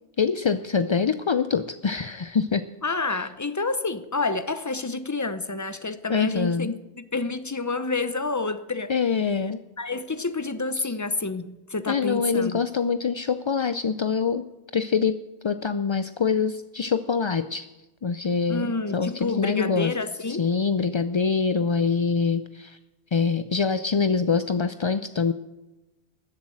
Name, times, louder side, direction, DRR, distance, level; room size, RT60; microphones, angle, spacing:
voice 1, 0.2-2.6 3.1-3.3 6.1-6.7 8.9-9.6 10.8-10.9 11.9-14.4 14.7-15.2 15.4-17.7 18.0-19.9 20.3-22.8 23.1-25.3, left 5 dB, 45° left, 0.3 m, -24 dB
voice 2, 2.8-8.9 9.8-12.6 18.5-20.4, left 3 dB, 20° left, 0.7 m, -29 dB
20.0 x 7.3 x 7.8 m
omnidirectional pair, 1.1 m